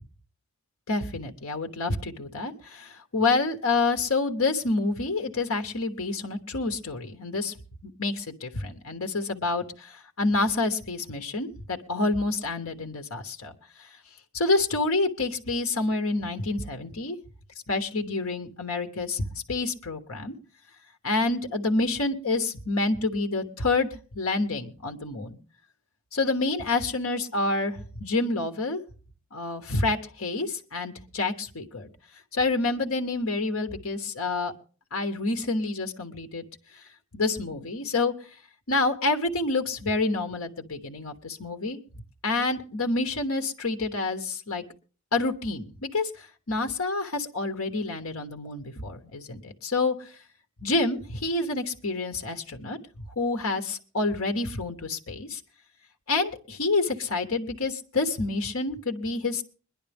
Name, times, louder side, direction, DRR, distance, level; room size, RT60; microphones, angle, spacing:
voice 1, 0.9-7.5 7.8-13.5 14.3-17.2 17.7-20.3 21.0-23.9 24.1-25.4 26.1-28.8 29.3-31.9 32.3-34.5 34.9-36.4 37.1-38.1 38.7-41.8 42.2-44.6 45.1-46.1 46.5-50.1 50.6-52.8 53.2-55.4 56.1-59.4, left 3 dB, 85° left, 5 dB, 1.3 m, -28 dB
21.5 x 11.0 x 3.5 m, 0.37 s
head